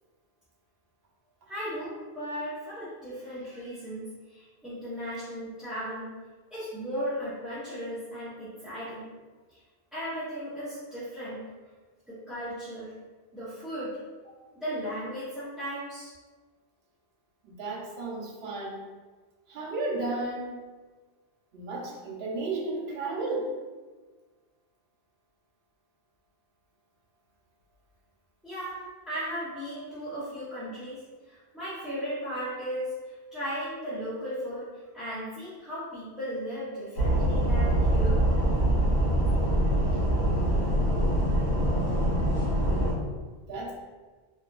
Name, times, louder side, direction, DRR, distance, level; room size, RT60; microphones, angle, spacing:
voice 1, 1.5-6.1 6.5-9.1 9.5-9.6 9.9-11.5 12.1-12.9 13.3-14.0 14.2-14.3 14.6-16.1 28.4-34.7 34.9-38.2, equal, ahead, -13 dB, 0.5 m, -36 dB
voice 2, 17.5-18.9 19.5-20.5 21.5-23.5 43.5-43.7, right 2 dB, 80° right, -3 dB, 0.9 m, -33 dB
sound 1, 37.0-42.9, right 1 dB, 85° left, 1.1 m, -24 dB
2.6 x 2.4 x 2.2 m, 1.3 s
omnidirectional pair, 1.0 m